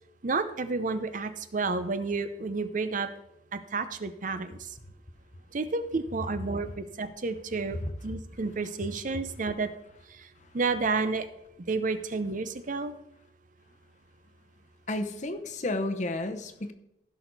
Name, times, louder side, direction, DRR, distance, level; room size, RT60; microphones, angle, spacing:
voice 1, 0.2-3.1 3.5-4.7 5.5-9.7 10.5-11.3 11.7-12.9, right 3 dB, 45° right, 11 dB, 0.6 m, -30 dB
voice 2, 14.9-16.7, left 2 dB, 40° left, 7 dB, 0.9 m, -31 dB
15.5 x 6.2 x 4.1 m, 0.83 s
head